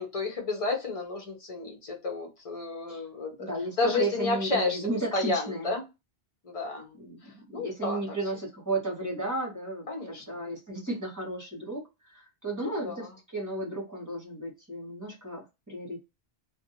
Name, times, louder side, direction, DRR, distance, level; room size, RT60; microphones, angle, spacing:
voice 1, 0.0-3.5 3.8-4.9 5.1-5.9 6.4-6.9 7.5-8.0 9.9-10.2 12.6-13.0, left 3 dB, 35° left, 0.8 m, -31 dB
voice 2, 3.4-5.7 7.0-16.0, right 2 dB, 20° right, 1.1 m, -34 dB
2.5 x 2.3 x 2.7 m
omnidirectional pair, 1.1 m